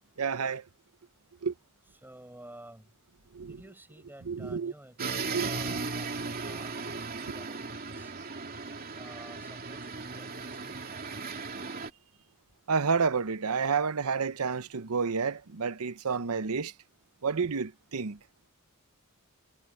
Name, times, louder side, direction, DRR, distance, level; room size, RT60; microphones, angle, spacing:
voice 1, 0.2-0.6 1.4-1.5 3.3-3.6 4.3-4.7 5.0-5.1 5.3-5.5 12.7-16.7 17.2-18.2, right 5 dB, 85° right, 0.8 m, -30 dB
voice 2, 2.0-2.9 3.5-6.8 7.2-8.1 9.0-10.8, right 1 dB, 10° right, 6.3 m, -51 dB
sound 1, 5.0-11.9, right 4 dB, 45° right, 2.7 m, -37 dB
head